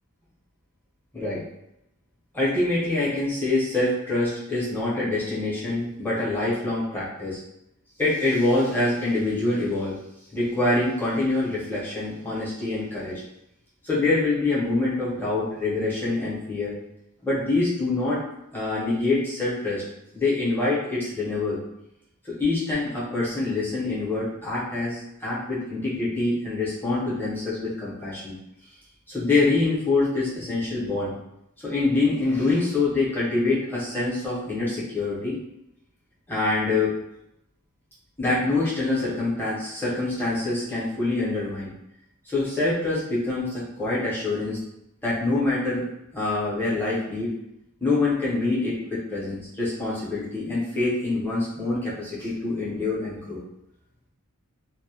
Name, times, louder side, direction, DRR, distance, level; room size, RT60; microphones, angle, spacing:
voice 1, 2.3-7.4 8.0-10.0 10.3-13.2 13.8-16.7 17.2-18.2 18.5-19.8 20.1-21.6 22.2-28.3 29.1-31.1 31.6-35.3 36.3-36.9 38.2-41.7 42.3-44.6 45.0-45.8 46.1-47.3 47.8-53.4, left 2 dB, 10° left, -8 dB, 0.7 m, -25 dB
2.1 x 2.1 x 2.8 m, 0.83 s
head